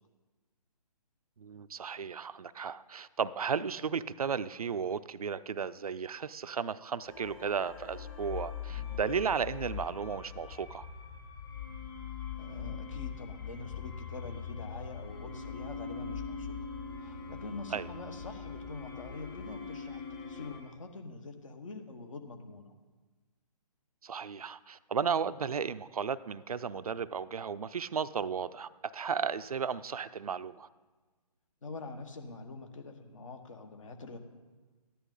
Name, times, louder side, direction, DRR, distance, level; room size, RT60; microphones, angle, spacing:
voice 1, 1.4-10.8 17.7-17.9 24.0-30.7, right 6 dB, 65° right, 14 dB, 0.4 m, -34 dB
sound 1, 7.1-20.6, left 6 dB, 35° left, 2.0 m, -42 dB
voice 2, 12.4-16.7 17.0-22.7 31.6-34.2, left 3 dB, 55° left, 6 dB, 1.3 m, -45 dB
14.0 x 10.0 x 3.9 m, 1.3 s
figure-of-eight pair, 140°, 20 cm